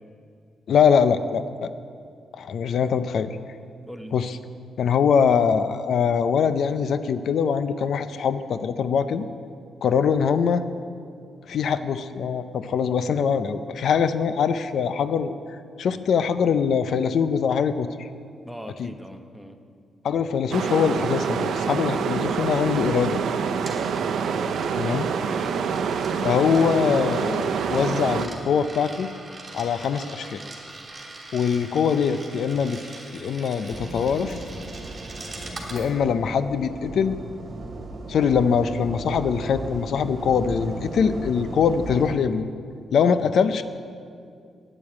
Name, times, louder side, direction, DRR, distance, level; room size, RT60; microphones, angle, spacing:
voice 1, 0.7-1.7 2.3-3.4 4.1-4.4 4.8-9.2 9.8-10.6 11.5-15.3 15.8-18.1 18.8-18.9 20.0-23.2 24.7-25.1 26.2-29.1 29.5-30.4 31.3-32.8 33.1-34.4 35.7-37.2 38.1-42.4 42.9-43.6, left 6 dB, 70° left, 11 dB, 0.5 m, -23 dB
voice 2, 3.8-4.1 18.4-19.6 25.0-25.6, equal, ahead, 5 dB, 1.0 m, -40 dB
sound 1, 20.5-28.3, right 6 dB, 80° right, 0.7 m, -26 dB
Coin (dropping), 23.1-35.9, right 2 dB, 30° right, 3.0 m, -41 dB
sound 2, 33.7-42.2, right 2 dB, 50° right, 1.9 m, -36 dB
9.1 x 8.6 x 9.5 m, 2.4 s
cardioid pair, 100°, 0 cm